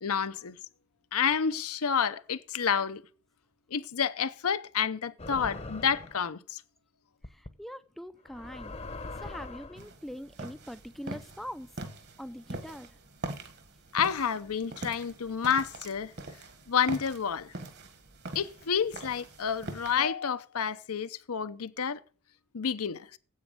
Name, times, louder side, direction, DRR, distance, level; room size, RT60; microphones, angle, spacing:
voice 1, 0.0-0.6 1.1-3.0 3.7-6.6 13.9-16.1 16.7-17.5 18.3-22.0 22.5-23.2, left 7 dB, 75° left, 0.7 m, -29 dB
sound 1, 5.2-6.2 7.2-7.5 8.3-9.8, left 2 dB, 30° left, 0.8 m, -41 dB
voice 2, 7.3-8.8 9.1-11.7 12.2-12.9, equal, ahead, 0.4 m, -43 dB
sound 2, 9.8-20.1, right 2 dB, 50° right, 1.4 m, -43 dB
9.5 x 8.2 x 6.7 m
head